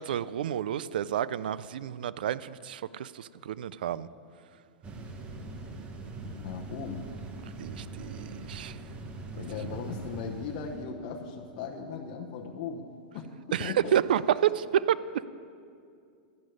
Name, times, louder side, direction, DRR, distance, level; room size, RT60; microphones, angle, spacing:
voice 1, 0.0-4.1 7.6-8.8 9.3-9.4 13.5-15.3, right 10 dB, 80° right, 17 dB, 0.4 m, -30 dB
sound 1, 4.8-10.9, right 3 dB, 25° right, 1.2 m, -42 dB
voice 2, 6.2-7.1 9.3-12.9 13.1-13.3 13.6-14.0, left 6 dB, 50° left, 1 dB, 0.9 m, -38 dB
12.0 x 6.2 x 9.2 m, 2.4 s
hypercardioid pair, 135°, 5 cm